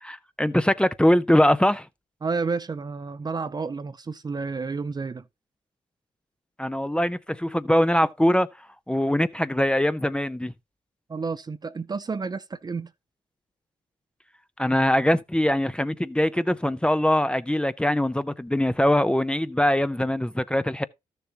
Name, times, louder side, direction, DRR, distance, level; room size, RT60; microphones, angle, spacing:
voice 1, 0.0-1.9 6.6-8.5 8.9-10.5 14.6-20.8, left 1 dB, 5° left, 0.6 m, -22 dB
voice 2, 2.2-5.2 11.1-12.9, right 4 dB, 30° right, 0.6 m, -30 dB
13.0 x 6.7 x 2.9 m
cardioid pair, 65°, 13 cm